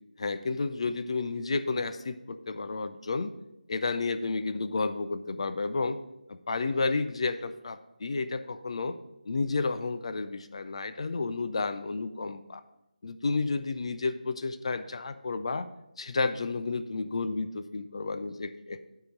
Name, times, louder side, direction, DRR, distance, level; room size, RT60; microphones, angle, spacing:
voice 1, 0.2-3.4 3.7-6.0 6.3-9.0 9.2-12.6 13.0-15.7 16.0-18.8, left 3 dB, 45° left, 11 dB, 0.5 m, -31 dB
10.0 x 4.8 x 5.2 m, 0.89 s
figure-of-eight pair, 160°, 5 cm